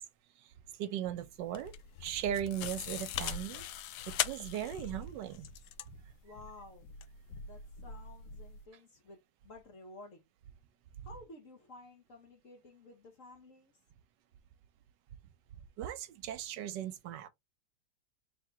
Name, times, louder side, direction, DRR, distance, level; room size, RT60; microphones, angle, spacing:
voice 1, 0.8-1.7 2.0-3.7 4.1-5.5 15.8-17.3, right 10 dB, 75° right, 1.2 m, -38 dB
sound 1, 1.3-8.7, left 9 dB, 70° left, 1.0 m, -41 dB
voice 2, 6.2-6.9 7.4-10.2 11.0-13.7, left 2 dB, 50° left, 1.2 m, -53 dB
3.7 x 2.8 x 4.5 m
omnidirectional pair, 2.0 m